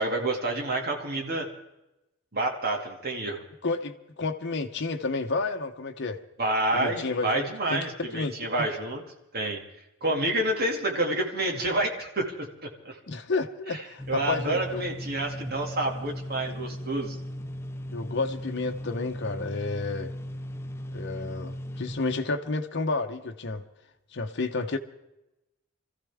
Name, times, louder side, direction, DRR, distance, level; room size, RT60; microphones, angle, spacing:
voice 1, 0.0-1.5 2.3-3.4 6.4-9.0 9.3-9.6 10.0-13.0 14.1-17.2, right 2 dB, 50° right, 2 dB, 2.3 m, -28 dB
voice 2, 3.6-6.2 6.7-7.4 7.7-8.3 13.1-14.8 17.9-20.1 20.9-23.6 24.1-24.8, left 3 dB, 60° left, 4 dB, 0.9 m, -31 dB
sound 1, 14.0-22.2, equal, 15° left, 0.6 m, -37 dB
25.5 x 14.5 x 3.6 m, 0.93 s
head